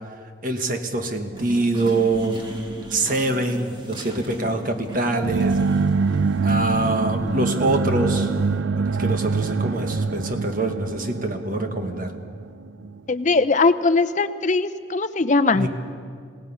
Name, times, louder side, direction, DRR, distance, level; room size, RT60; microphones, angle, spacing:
voice 1, 0.4-2.4 2.9-5.6 6.4-8.3 8.8-12.1 15.5-15.7, right 2 dB, 45° right, 5 dB, 1.5 m, -24 dB
sound 1, 1.3-8.6, right 1 dB, 25° right, 2.0 m, -37 dB
sound 2, 5.2-13.0, right 4 dB, 85° right, 0.5 m, -24 dB
voice 2, 13.1-15.7, left 3 dB, 40° left, 12 dB, 0.7 m, -20 dB
27.0 x 18.0 x 5.7 m, 2.2 s
head